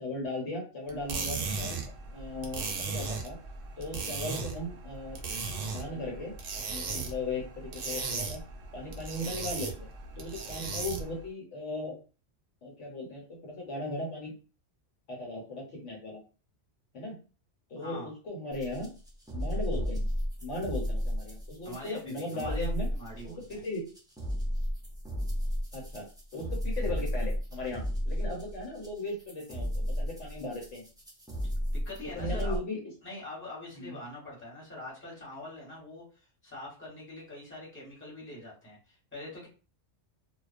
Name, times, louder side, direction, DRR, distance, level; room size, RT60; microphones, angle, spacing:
voice 1, 0.0-1.8 2.1-3.4 3.8-5.2 5.7-6.4 6.7-8.4 8.7-9.7 10.2-12.0 12.6-14.3 15.1-16.2 16.9-17.2 17.7-18.9 19.3-20.1 20.4-22.9 23.2-23.9 25.7-26.1 26.3-30.8 32.0-32.8 33.8-34.0, left 2 dB, 80° left, -1 dB, 1.2 m, -37 dB
sound 1, 0.9-11.2, right 4 dB, 60° right, 0.7 m, -37 dB
voice 2, 17.8-18.1 21.6-23.6 31.7-32.6 33.0-39.5, left 1 dB, 10° left, -4 dB, 1.0 m, -44 dB
sound 2, 18.5-32.6, equal, 5° right, 0.3 m, -33 dB
2.4 x 2.2 x 2.4 m, 0.35 s
omnidirectional pair, 1.2 m